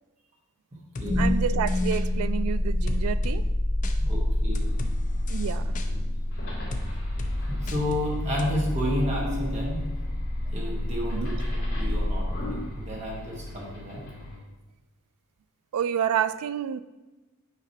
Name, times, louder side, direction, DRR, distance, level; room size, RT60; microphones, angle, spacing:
sound 1, 1.0-1.1 1.7-2.0 2.9-3.4 3.8-4.0 4.6-4.9 5.3-5.9 6.7-6.9 7.2-7.3 7.7-8.1 8.4-8.5, left 3 dB, 35° left, 0.5 m, -38 dB
sound 2, 1.0-13.1, left 1 dB, 20° left, 1.8 m, -28 dB
voice 1, 1.2-3.5 5.3-5.7 11.1-11.3 15.7-16.8, right 8 dB, 80° right, 15 dB, 0.3 m, -29 dB
voice 2, 4.0-4.7 7.5-9.8 10.5-14.0, left 1 dB, 30° right, -3 dB, 1.3 m, -31 dB
sound 3, 4.5-14.4, left 1 dB, 60° left, 2.2 m, -40 dB
8.2 x 5.0 x 2.8 m, 1.1 s
head